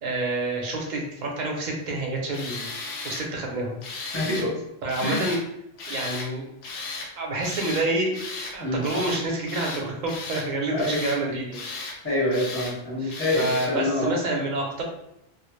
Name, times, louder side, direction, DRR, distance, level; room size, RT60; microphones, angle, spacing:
voice 1, 0.0-2.7 3.0-3.8 4.8-5.4 5.9-6.5 7.2-8.2 8.5-11.6 13.0-14.8, right 2 dB, 50° right, -1 dB, 0.6 m, -28 dB
Tools, 2.3-3.2 3.8-4.5 4.9-5.4 5.8-6.3 6.6-7.1 7.4-7.9 8.1-8.5 8.8-9.2 9.5-10.5 10.8-11.2 11.5-12.0 12.3-12.7 13.1-13.7, left 3 dB, 85° left, 0.8 m, -35 dB
voice 2, 4.1-4.5 5.0-5.3 8.6-8.8 10.7-11.0 12.0-14.1, left 1 dB, 15° left, -6 dB, 0.8 m, -26 dB
2.0 x 2.0 x 3.0 m, 0.81 s
omnidirectional pair, 1.1 m